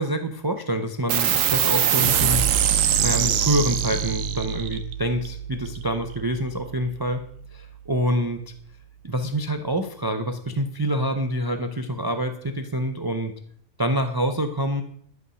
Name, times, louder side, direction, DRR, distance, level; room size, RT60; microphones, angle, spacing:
voice 1, 0.0-2.4 3.0-7.2 7.5-8.4 9.0-13.3 13.8-14.8, equal, 30° right, 8 dB, 0.4 m, -26 dB
sound 1, 1.1-8.0, right 9 dB, 85° right, 1.1 m, -24 dB
11.5 x 5.6 x 6.1 m, 0.64 s
omnidirectional pair, 1.3 m